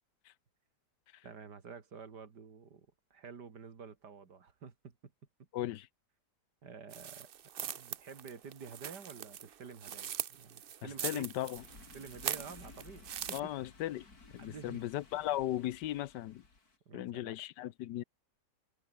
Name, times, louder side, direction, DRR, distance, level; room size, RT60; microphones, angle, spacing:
voice 1, 1.2-5.1 6.6-7.3 7.6-11.2 11.9-13.5 14.4-14.8 16.9-17.3, right 5 dB, 75° right, 2.9 m, -50 dB
voice 2, 5.5-5.9 11.0-11.6 13.3-14.1 14.3-16.4 16.9-18.0, left 14 dB, 85° left, 1.4 m, -37 dB
sound 1, 6.9-13.4, right 9 dB, 60° right, 0.6 m, -42 dB
sound 2, 11.5-16.8, left 3 dB, 60° left, 4.1 m, -57 dB
omnidirectional pair, 1.8 m